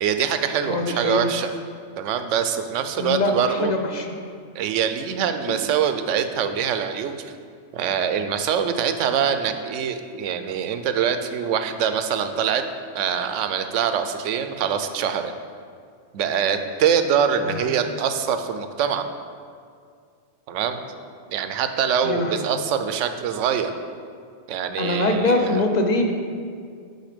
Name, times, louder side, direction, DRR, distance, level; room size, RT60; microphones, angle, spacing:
voice 1, 0.0-1.5 2.0-3.7 4.5-7.3 7.7-12.6 12.9-15.3 16.1-19.1 20.5-20.8 21.3-23.7 24.5-25.6, right 8 dB, 85° right, 8 dB, 0.9 m, -24 dB
voice 2, 0.7-1.3 3.0-4.2 17.4-17.8 22.0-22.5 24.8-26.1, left 2 dB, 45° left, 4 dB, 0.6 m, -23 dB
6.5 x 5.8 x 5.0 m, 2.2 s
omnidirectional pair, 1.2 m